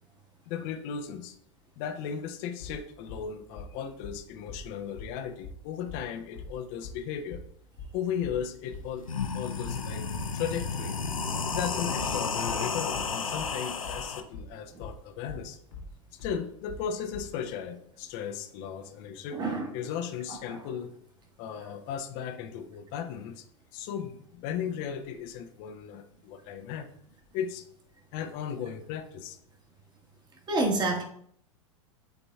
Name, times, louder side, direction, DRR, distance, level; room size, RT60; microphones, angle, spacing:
voice 1, 0.5-1.4 1.8-7.4 7.9-9.1 9.3-10.0 10.3-11.0 11.5-15.6 16.2-19.4 19.7-21.0 21.4-23.5 23.7-26.9 27.3-27.7 28.1-29.4, left 8 dB, 45° left, 7 dB, 0.7 m, -36 dB
sound 1, 2.6-17.4, left 2 dB, 70° left, 1.6 m, -43 dB
sound 2, 8.5-8.6 8.9-14.2, left 5 dB, 85° left, 0.6 m, -32 dB
voice 2, 19.3-19.7 20.5-20.6 30.5-31.0, right 2 dB, 25° right, 1 dB, 1.5 m, -27 dB
10.5 x 4.0 x 2.3 m, 0.67 s
figure-of-eight pair, 90°, 17 cm